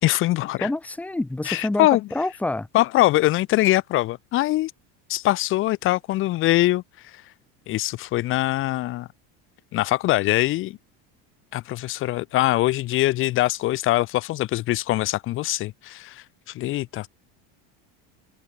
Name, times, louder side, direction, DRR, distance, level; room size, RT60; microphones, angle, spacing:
voice 1, 0.0-0.7 1.5-2.0 2.7-4.7 5.1-7.2 7.7-9.1 9.7-10.8 11.5-17.1, left 16 dB, 40° left, 3.4 m, -23 dB
voice 2, 0.6-2.7, left 2 dB, 5° left, 4.1 m, -27 dB
cardioid pair, 175°, 32 cm